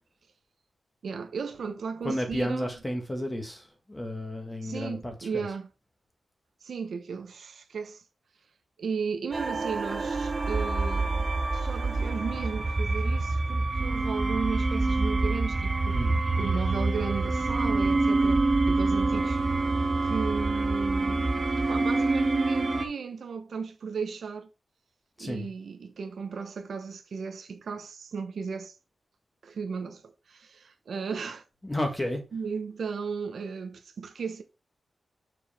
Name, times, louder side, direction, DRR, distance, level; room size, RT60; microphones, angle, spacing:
voice 1, 1.0-2.7 4.6-5.7 6.6-8.0 8.8-19.4 20.0-24.5 25.2-28.7 29.4-30.0 30.3-31.4 32.3-34.4, right 5 dB, 70° right, 0.9 m, -35 dB
voice 2, 2.0-5.5 15.9-16.2 25.2-25.5 31.6-32.2, left 1 dB, 10° left, 1.4 m, -32 dB
sound 1, 9.3-22.8, right 3 dB, 25° right, 0.7 m, -26 dB
7.0 x 4.7 x 3.6 m
wide cardioid pair, 170°, 0 cm